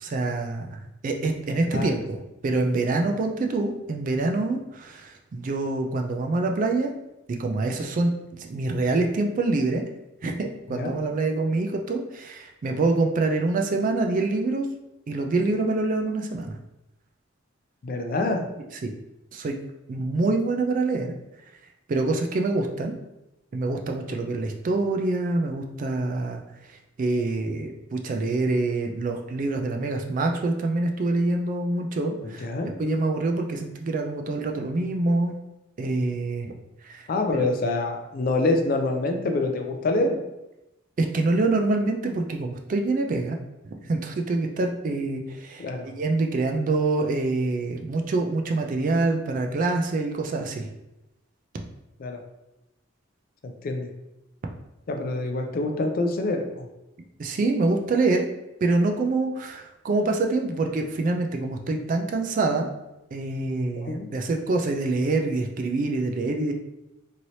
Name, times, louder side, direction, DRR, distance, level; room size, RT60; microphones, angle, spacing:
voice 1, 0.0-6.9 7.3-9.8 10.2-14.7 15.1-16.5 18.8-18.9 19.3-19.6 19.9-21.1 21.9-22.9 23.5-26.4 26.7-32.5 32.8-35.3 35.8-36.5 36.8-37.1 37.3-37.5 41.0-43.4 43.8-50.7 57.2-58.3 58.6-62.7 63.1-66.5, right 2 dB, 40° right, 3 dB, 0.3 m, -26 dB
voice 2, 17.8-18.4 32.2-32.7 37.1-40.2 45.6-45.9 52.0-52.2 53.6-53.9 54.9-56.7 63.7-64.1, left 2 dB, 45° left, 4 dB, 0.4 m, -26 dB
3.1 x 2.8 x 2.7 m, 0.93 s
head